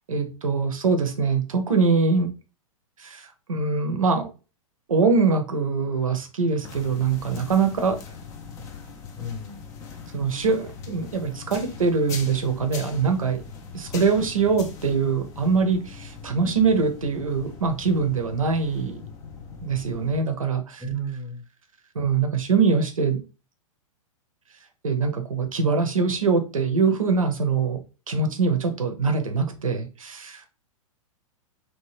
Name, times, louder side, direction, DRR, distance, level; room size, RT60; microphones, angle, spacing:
voice 1, 0.1-2.3 3.0-4.3 4.9-8.0 10.1-13.4 13.7-19.0 19.6-20.9 21.9-23.2 24.8-27.8 28.1-30.4, right 4 dB, 70° right, 6 dB, 0.6 m, -23 dB
sound 1, 6.6-20.2, left 5 dB, 20° left, 0.3 m, -41 dB
voice 2, 9.2-9.6 20.8-21.4, right 3 dB, ahead, -1 dB, 0.8 m, -32 dB
2.9 x 2.1 x 3.1 m, 0.32 s
figure-of-eight pair, 105°, 18 cm